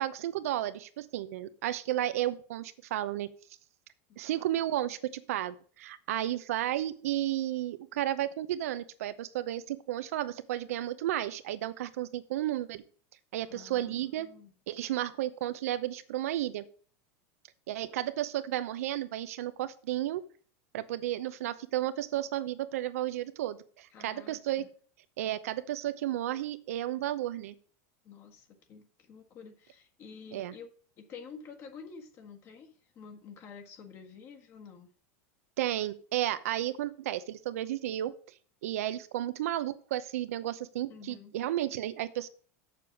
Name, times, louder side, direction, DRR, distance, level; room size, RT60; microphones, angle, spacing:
voice 1, 0.0-3.3 4.2-12.8 13.3-14.3 14.7-16.6 17.7-20.2 20.7-24.7 25.2-27.5 30.3-30.5 35.6-38.1 38.6-42.3, right 13 dB, 85° right, 13 dB, 0.7 m, -33 dB
voice 2, 4.1-4.4 13.5-14.5 23.9-24.7 28.0-30.7 31.0-34.9 40.9-41.3, left 6 dB, 35° left, 4 dB, 1.6 m, -49 dB
6.9 x 6.8 x 5.9 m, 0.43 s
supercardioid pair, 155°, 8 cm